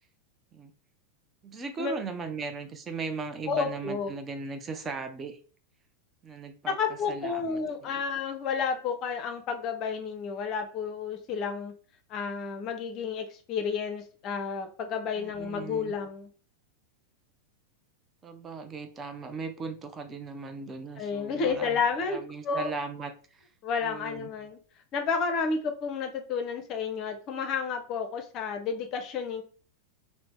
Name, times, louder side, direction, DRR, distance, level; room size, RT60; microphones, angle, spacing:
voice 1, 1.4-5.4 6.2-6.8 7.1-8.0 15.2-15.9 18.2-23.5 23.8-24.3, right 4 dB, 20° right, 6 dB, 0.4 m, -38 dB
voice 2, 3.5-4.1 6.7-11.7 12.1-16.3 21.0-22.2 22.4-22.7 23.6-24.6 24.9-29.4, left 5 dB, 35° left, 6 dB, 0.5 m, -31 dB
2.9 x 2.0 x 3.3 m, 0.40 s
figure-of-eight pair, 90°, 0 cm